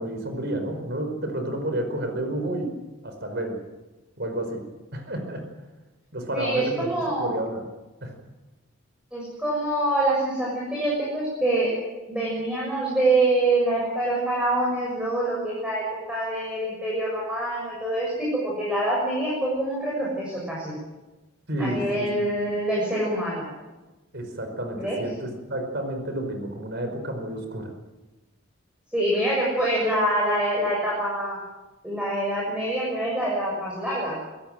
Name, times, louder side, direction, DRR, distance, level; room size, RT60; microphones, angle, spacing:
voice 1, 0.0-2.7 3.0-3.6 4.2-4.7 4.9-5.4 6.1-6.9 7.2-7.6 8.0-8.1 21.5-22.3 24.1-27.7, right 1 dB, 50° right, 6 dB, 5.0 m, -30 dB
voice 2, 6.3-7.3 9.1-11.7 12.1-15.8 16.1-20.7 21.6-23.4 24.8-25.0 28.9-31.4 31.8-34.2, right 1 dB, 5° right, -5 dB, 6.8 m, -25 dB
25.0 x 16.5 x 7.7 m, 1.1 s
head